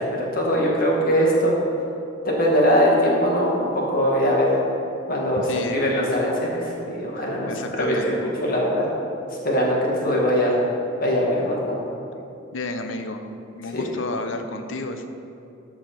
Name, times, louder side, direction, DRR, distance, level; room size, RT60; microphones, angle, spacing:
voice 1, 0.0-1.6 2.2-4.6 5.1-8.9 9.3-10.6 11.0-11.8 13.7-13.9, equal, 45° left, -3 dB, 1.8 m, -21 dB
voice 2, 5.5-5.8 7.4-8.2 12.5-13.2 13.5-15.1, left 2 dB, 80° left, 7 dB, 0.8 m, -31 dB
13.0 x 4.8 x 5.9 m, 2.8 s
head